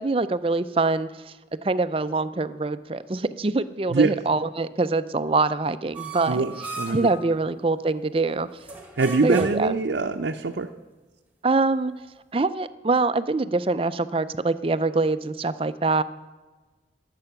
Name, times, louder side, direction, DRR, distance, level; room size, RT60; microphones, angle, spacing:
voice 1, 0.0-1.3 1.6-6.4 6.9-8.5 9.2-9.7 11.4-11.9 12.3-16.0, right 3 dB, 30° right, 13 dB, 0.5 m, -24 dB
sound 1, 5.9-7.1 8.6-9.8, right 3 dB, 10° right, 1.6 m, -36 dB
voice 2, 6.3-7.1 9.0-10.7, right 3 dB, 85° right, 3 dB, 0.6 m, -23 dB
20.5 x 7.7 x 5.8 m, 1.3 s
head